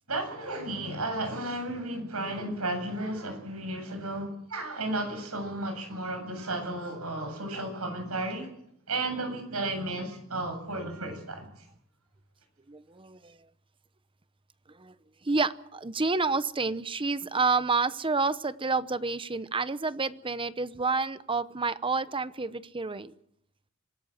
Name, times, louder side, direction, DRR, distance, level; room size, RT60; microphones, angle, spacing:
voice 1, 0.1-8.5 8.9-11.5, right 2 dB, 85° right, 7 dB, 7.8 m, -33 dB
voice 2, 12.7-13.4 14.8-14.9 15.2-23.1, right 4 dB, 25° right, 14 dB, 0.8 m, -29 dB
26.0 x 17.5 x 7.5 m, 0.72 s
head